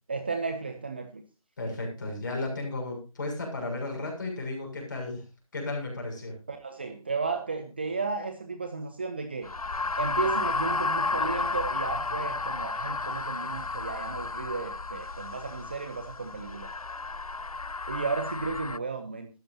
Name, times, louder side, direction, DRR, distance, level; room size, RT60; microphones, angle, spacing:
voice 1, 0.1-1.2 6.5-9.5 10.0-16.7 17.9-19.3, right 4 dB, 20° right, 7 dB, 0.7 m, -33 dB
voice 2, 1.6-5.2 5.5-6.3, left 2 dB, 35° left, 1 dB, 7.1 m, -34 dB
sound 1, 9.4-18.8, left 3 dB, 85° left, 0.5 m, -32 dB
17.0 x 13.5 x 2.7 m, 0.30 s
figure-of-eight pair, 160°, 18 cm